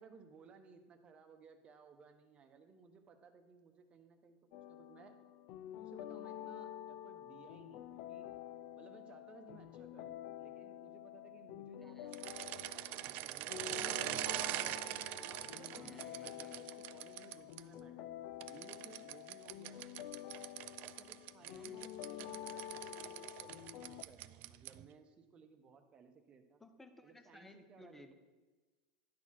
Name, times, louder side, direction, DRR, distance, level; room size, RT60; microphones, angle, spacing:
voice 1, 0.0-4.4 4.7-5.1 5.8-8.3 8.8-13.8 14.9-19.8 20.8-26.6 27.0-28.1, right 5 dB, 25° right, 6 dB, 0.9 m, -60 dB
sound 1, 4.5-24.0, left 12 dB, 55° left, 0.4 m, -49 dB
voice 2, 11.8-12.1 15.8-16.7 21.4-21.8 26.6-28.1, left 2 dB, 5° left, 7 dB, 0.6 m, -58 dB
sound 2, 12.1-17.6 18.4-24.9, right 15 dB, 45° right, 0.3 m, -43 dB
10.5 x 4.0 x 6.2 m, 1.3 s
supercardioid pair, 140°, 4 cm